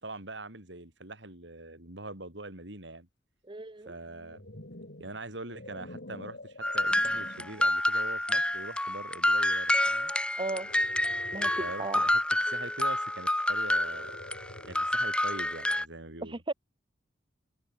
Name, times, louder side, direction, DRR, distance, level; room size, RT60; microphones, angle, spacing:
voice 1, 0.0-3.1 3.9-4.4 5.0-10.1 11.6-12.2 12.5-14.2 14.6-16.4, right 2 dB, 80° right, 6.2 m, -43 dB
voice 2, 3.5-3.9 10.4-10.7 11.3-12.0 16.2-16.5, right 2 dB, 25° right, 1.0 m, -35 dB
sound 1, 4.0-7.7 8.3-8.6 10.3-11.9 13.5-15.0, left 1 dB, 65° left, 3.6 m, -47 dB
sound 2, 6.6-15.8, left 1 dB, 5° left, 1.5 m, -28 dB
open air
head